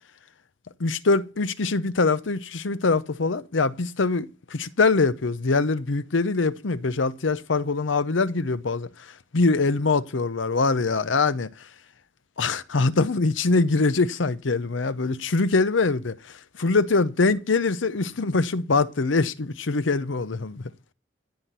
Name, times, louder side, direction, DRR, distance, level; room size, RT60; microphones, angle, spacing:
voice 1, 0.8-4.3 4.5-8.9 9.3-11.5 12.4-16.2 16.6-20.7, left 3 dB, 75° left, 0.7 m, -23 dB
14.5 x 5.8 x 8.1 m
head